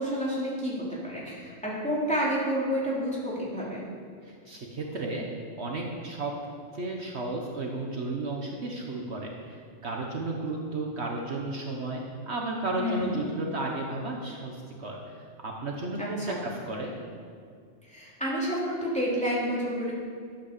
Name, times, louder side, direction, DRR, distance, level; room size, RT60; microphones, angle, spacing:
voice 1, 0.0-3.8 12.8-13.1 16.0-16.3 17.9-19.9, equal, 5° left, -7 dB, 3.3 m, -29 dB
voice 2, 4.2-5.2 5.6-6.3 6.7-16.9, right 2 dB, 60° right, 0 dB, 1.4 m, -33 dB
12.0 x 8.2 x 6.8 m, 2.2 s
omnidirectional pair, 1.3 m